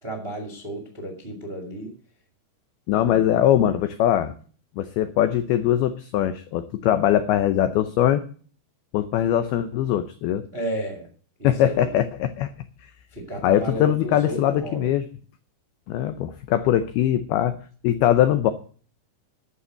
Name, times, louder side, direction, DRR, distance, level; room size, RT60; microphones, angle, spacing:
voice 1, 0.0-1.9 3.0-3.2 10.5-11.1 11.4-11.9 13.1-14.9, right 1 dB, 30° right, 2 dB, 1.0 m, -33 dB
voice 2, 2.9-4.3 4.8-8.2 8.9-10.5 11.4-12.5 12.8-12.9 13.4-15.1 15.9-17.6 17.8-18.5, left 11 dB, 85° left, 11 dB, 2.2 m, -21 dB
11.0 x 7.0 x 7.8 m, 0.43 s
omnidirectional pair, 5.3 m